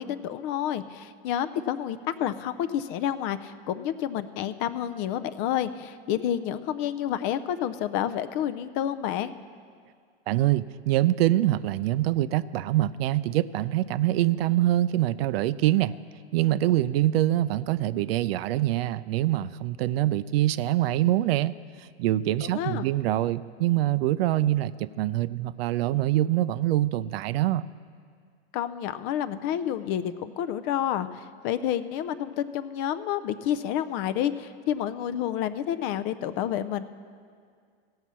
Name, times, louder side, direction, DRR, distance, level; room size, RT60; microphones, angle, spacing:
voice 1, 0.0-9.3 22.4-22.9 28.5-36.8, left 10 dB, 35° left, 13 dB, 0.4 m, -29 dB
voice 2, 10.3-15.9 16.3-27.6, right 14 dB, 70° right, 16 dB, 0.4 m, -25 dB
16.0 x 5.6 x 7.3 m, 2.1 s
hypercardioid pair, 125°, 32 cm